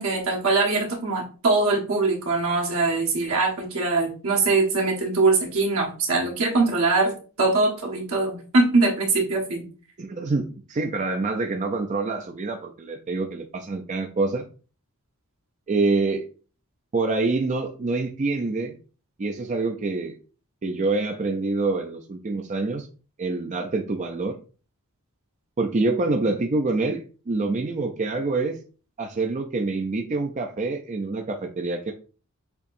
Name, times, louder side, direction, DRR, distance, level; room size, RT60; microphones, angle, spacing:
voice 1, 0.0-9.7, right 3 dB, 70° right, -1 dB, 1.4 m, -22 dB
voice 2, 10.0-14.4 15.7-16.3 16.9-18.8 19.2-20.2 20.6-22.9 23.2-24.4 25.6-28.6 29.0-31.9, right 3 dB, 35° right, 3 dB, 0.4 m, -26 dB
6.8 x 2.9 x 2.6 m, 0.37 s
head